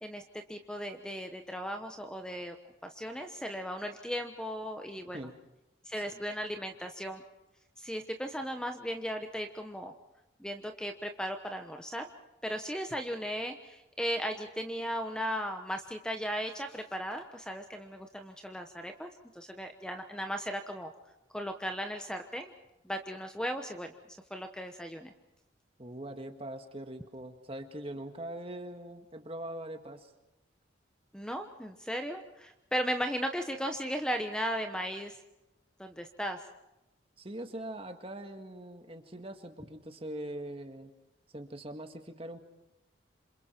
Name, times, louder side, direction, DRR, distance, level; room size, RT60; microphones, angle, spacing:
voice 1, 0.0-2.6 2.8-5.3 5.8-7.2 7.8-9.9 10.4-12.1 12.4-20.9 21.3-22.5 22.8-23.9 24.3-25.1 31.1-35.2 35.8-36.4, equal, 5° left, 5 dB, 1.0 m, -36 dB
voice 2, 25.8-30.1 37.2-40.9 41.3-42.4, right 1 dB, 30° right, 6 dB, 1.8 m, -42 dB
27.5 x 27.0 x 4.5 m, 0.93 s
head